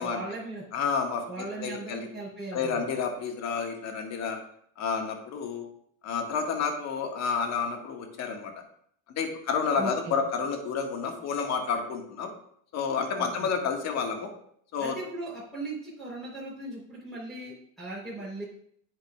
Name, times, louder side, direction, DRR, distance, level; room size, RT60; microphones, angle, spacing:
voice 1, 0.0-0.6 1.3-2.9 9.8-10.1 13.2-13.5 14.8-18.4, right 2 dB, ahead, -8 dB, 3.8 m, -38 dB
voice 2, 0.7-2.1 2.5-4.4 4.8-5.7 6.0-8.5 9.2-12.3 12.7-14.3 14.7-14.9, left 5 dB, 40° left, 3 dB, 1.8 m, -30 dB
9.6 x 8.9 x 2.4 m, 0.66 s
supercardioid pair, 115°, 40 cm